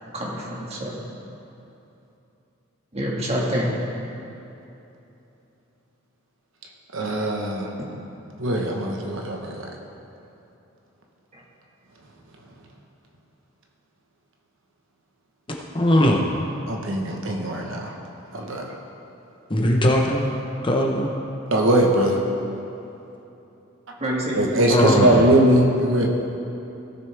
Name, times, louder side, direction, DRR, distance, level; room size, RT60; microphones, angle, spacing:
voice 1, 0.1-1.0 2.9-3.7 7.8-8.0 11.3-11.4 24.0-25.2, equal, 30° right, -3 dB, 1.7 m, -28 dB
voice 2, 6.9-7.7 8.4-9.7 16.7-17.9 18.3-18.7 21.5-22.2 24.4-26.1, right 1 dB, 70° right, 0 dB, 1.2 m, -21 dB
voice 3, 15.7-16.2 19.5-20.3 20.6-21.1 24.7-25.2, left 1 dB, 25° left, 0 dB, 0.8 m, -19 dB
17.5 x 6.6 x 3.5 m, 2.9 s
head